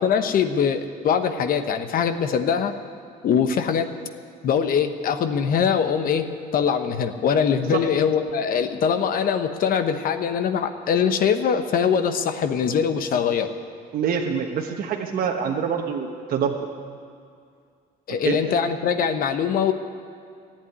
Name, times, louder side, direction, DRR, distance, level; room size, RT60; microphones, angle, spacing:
voice 1, 0.0-2.7 3.2-3.9 4.4-6.3 6.5-13.5 18.1-19.7, left 7 dB, 55° left, 9 dB, 1.0 m, -22 dB
voice 2, 13.9-16.5 18.2-18.6, right 7 dB, 60° right, 1 dB, 1.2 m, -26 dB
14.5 x 8.6 x 9.5 m, 2.3 s
cardioid pair, 110°, 17 cm